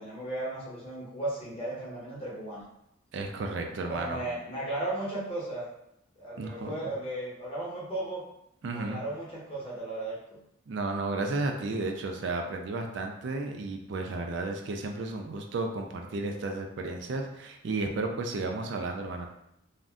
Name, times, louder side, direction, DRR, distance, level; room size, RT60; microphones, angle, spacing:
voice 1, 0.0-2.6 3.9-5.7 6.2-8.2 8.7-10.4, right 2 dB, 25° left, -6 dB, 0.9 m, -35 dB
voice 2, 3.1-4.2 6.4-6.8 8.6-9.0 10.7-19.3, right 3 dB, 60° right, 3 dB, 0.3 m, -33 dB
2.5 x 2.1 x 3.5 m, 0.78 s
head